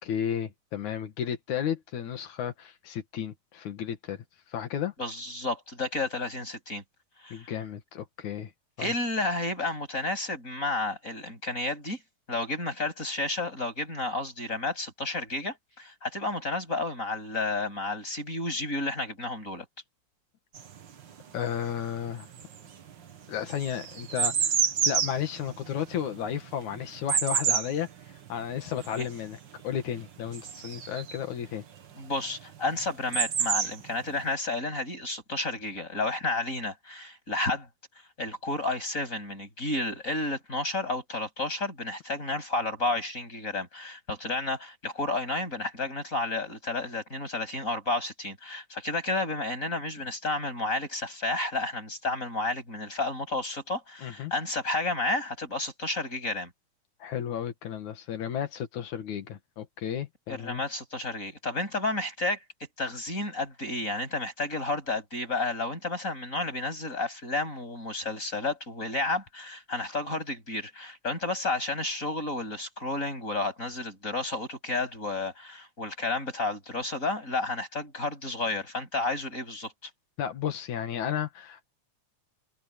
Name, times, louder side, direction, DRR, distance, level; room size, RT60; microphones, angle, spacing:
voice 1, 0.0-4.2 4.5-4.9 7.3-8.5 8.8-8.9 21.3-22.3 23.3-24.6 24.8-27.9 28.3-29.4 29.6-31.6 54.0-54.3 57.0-60.6 80.2-81.6, left 9 dB, 75° left, 3.1 m, -33 dB
voice 2, 5.0-6.8 7.2-7.5 8.8-12.0 12.3-19.6 29.0-29.1 32.0-37.7 38.2-56.5 60.3-62.4 62.8-79.9, left 2 dB, 25° left, 8.5 m, -31 dB
sound 1, 20.5-21.7 22.0-31.3 32.4-32.5 32.7-34.2, right 7 dB, 45° right, 1.7 m, -29 dB
omnidirectional pair, 3.4 m